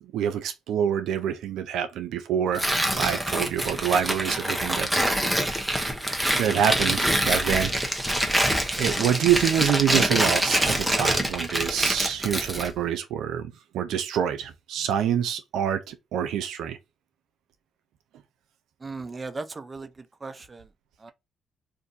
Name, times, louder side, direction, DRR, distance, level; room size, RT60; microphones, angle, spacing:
voice 1, 0.0-5.7 6.4-7.7 8.8-16.8, right 9 dB, 80° right, 0.4 m, -26 dB
Tearing, 2.5-12.7, right 1 dB, 5° right, 0.9 m, -25 dB
voice 2, 18.8-19.9 20.2-20.7 21.0-21.1, right 3 dB, 30° right, 0.5 m, -37 dB
2.6 x 2.5 x 3.9 m
cardioid pair, 80°, 0 cm